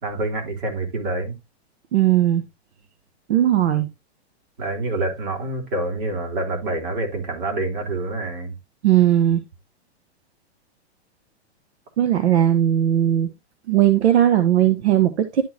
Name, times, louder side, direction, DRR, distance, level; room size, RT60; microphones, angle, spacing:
voice 1, 0.0-1.3 4.6-8.5, right 2 dB, 50° right, 3.2 m, -27 dB
voice 2, 1.9-2.4 3.3-3.9 8.8-9.4 12.0-13.3 13.7-15.4, right 11 dB, 80° right, 1.1 m, -18 dB
11.5 x 4.1 x 2.8 m
supercardioid pair, 170°, 33 cm